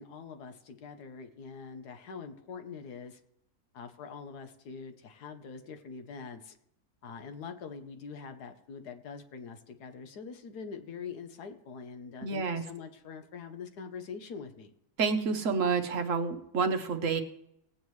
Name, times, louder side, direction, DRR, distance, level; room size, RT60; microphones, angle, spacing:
voice 1, 0.0-3.2 3.7-6.6 7.0-14.7, left 5 dB, 75° left, 7 dB, 1.5 m, -44 dB
voice 2, 12.2-12.6 15.0-17.2, right 5 dB, 55° right, 6 dB, 1.2 m, -29 dB
18.5 x 8.7 x 3.2 m, 0.78 s
omnidirectional pair, 1.7 m